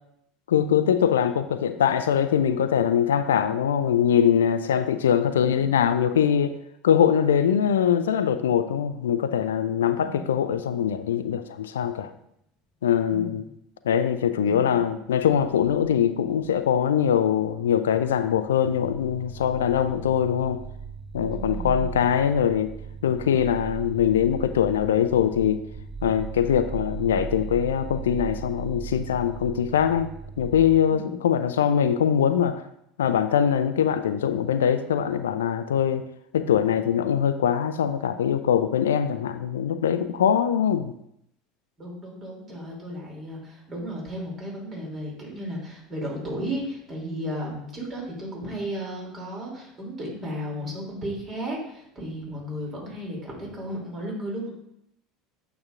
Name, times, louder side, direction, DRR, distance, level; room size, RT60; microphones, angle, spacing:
voice 1, 0.5-6.5 6.8-12.1 12.8-13.4 13.8-20.6 21.1-22.7 23.0-25.6 26.0-30.1 30.4-32.6 33.0-36.1 36.3-40.9, left 8 dB, 75° left, 11 dB, 0.3 m, -22 dB
voice 2, 10.0-10.4 13.1-13.5 14.4-15.1 21.3-22.0 30.9-31.2 41.8-54.5, equal, 35° right, -2 dB, 2.8 m, -34 dB
sound 1, 15.4-16.7 16.9-30.8, right 6 dB, 5° left, 0.8 m, -38 dB
8.8 x 5.8 x 2.5 m, 0.77 s
figure-of-eight pair, 70°, 0 cm